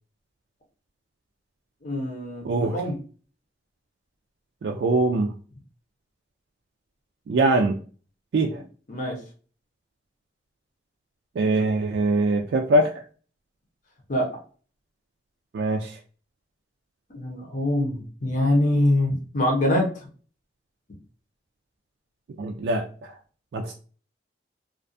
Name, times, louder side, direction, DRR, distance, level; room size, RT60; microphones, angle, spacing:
voice 1, 1.8-2.9 8.9-9.2 14.1-14.3 17.1-20.1, left 1 dB, 45° left, -1 dB, 0.7 m, -24 dB
voice 2, 2.4-2.8 4.6-5.3 7.3-7.8 8.3-8.6 11.4-13.0 15.5-16.0 22.4-23.2 23.5-23.7, right 2 dB, 70° right, 2 dB, 0.3 m, -23 dB
2.4 x 2.2 x 2.5 m, 0.40 s
head